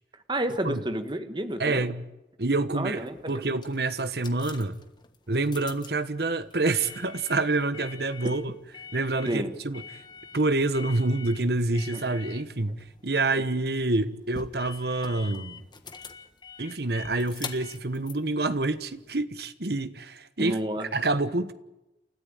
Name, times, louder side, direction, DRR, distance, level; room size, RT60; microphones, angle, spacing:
voice 1, 0.3-1.8 2.7-3.3 9.3-9.5 11.9-12.0 20.4-20.9, right 1 dB, 25° right, 1.6 m, -30 dB
voice 2, 1.6-2.0 2.4-4.8 5.3-8.5 8.9-9.8 10.3-15.6 16.6-20.6 20.9-21.5, right 2 dB, 60° right, 1.3 m, -27 dB
sound 1, 2.8-19.2, left 5 dB, 25° left, 1.4 m, -46 dB
29.0 x 14.0 x 9.0 m
head